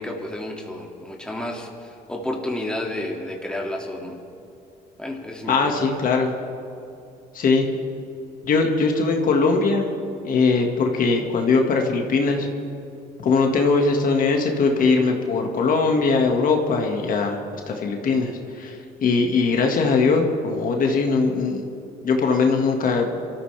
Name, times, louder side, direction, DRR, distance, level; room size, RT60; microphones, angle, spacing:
voice 1, 0.0-4.2 5.0-5.7, left 1 dB, 5° left, -1 dB, 2.2 m, -31 dB
voice 2, 5.5-6.3 7.3-7.7 8.4-9.9 10.2-12.5 13.2-17.4 17.7-21.6 22.0-23.2, left 4 dB, 55° left, 2 dB, 1.9 m, -20 dB
25.0 x 14.0 x 3.4 m, 2.6 s
cardioid pair, 110°, 17 cm